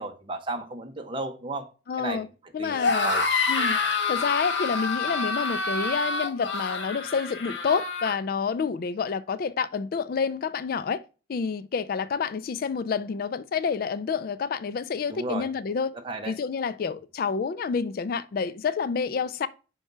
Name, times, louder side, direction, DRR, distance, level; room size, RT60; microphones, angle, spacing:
voice 1, 0.0-1.7 2.0-2.3 2.6-3.2 15.1-15.5 16.0-16.3, right 2 dB, 30° right, 1.0 m, -34 dB
voice 2, 1.9-2.3 2.5-3.1 3.5-3.8 4.1-11.0 11.3-15.9 16.2-19.5, left 5 dB, 50° left, 0.3 m, -28 dB
sound 1, 2.7-8.2, left 4 dB, 90° left, 1.3 m, -27 dB
5.6 x 4.7 x 5.4 m
head